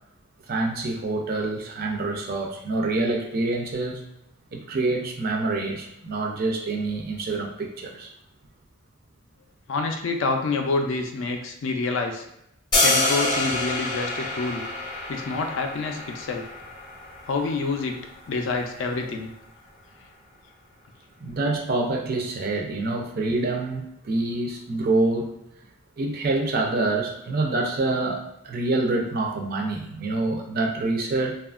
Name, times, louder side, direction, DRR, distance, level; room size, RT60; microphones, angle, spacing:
voice 1, 0.5-4.0 4.5-8.1 21.2-25.3 26.0-31.4, right 2 dB, 40° right, 1 dB, 0.4 m, -26 dB
voice 2, 9.7-12.2 12.8-14.6 15.1-16.5 17.3-18.0 18.3-19.3, left 3 dB, 55° left, 4 dB, 0.3 m, -27 dB
sound 1, 12.7-18.8, left 1 dB, 20° left, 0.7 m, -27 dB
2.7 x 2.3 x 2.4 m, 0.82 s
head